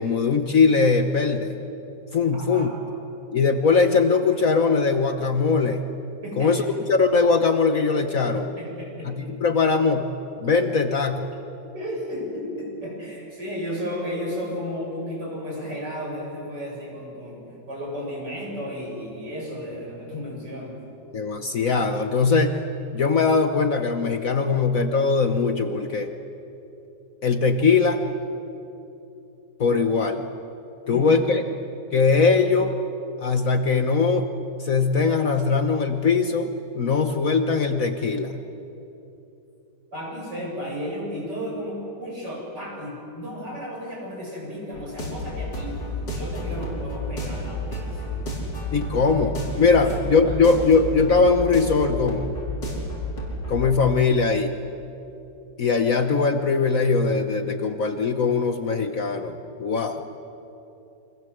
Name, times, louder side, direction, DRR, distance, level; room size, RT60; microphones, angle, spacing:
voice 1, 0.0-1.5 2.1-2.7 3.3-5.8 6.4-8.5 9.1-10.1 10.4-11.3 21.1-22.5 22.9-26.1 27.2-28.0 29.6-30.2 30.9-31.4 31.9-32.7 33.2-34.3 34.6-36.5 36.7-38.4 48.7-52.4 53.5-54.5 55.6-60.0, left 4 dB, 50° left, 7 dB, 1.4 m, -21 dB
voice 2, 2.3-2.7 6.2-6.5 8.3-9.3 11.7-20.8 30.8-31.2 39.9-45.7 46.1-48.2 49.5-50.4, equal, 65° right, -2 dB, 8.5 m, -34 dB
sound 1, 44.7-53.5, left 1 dB, 75° left, 5.6 m, -31 dB
29.5 x 25.0 x 7.9 m, 2.9 s
omnidirectional pair, 2.0 m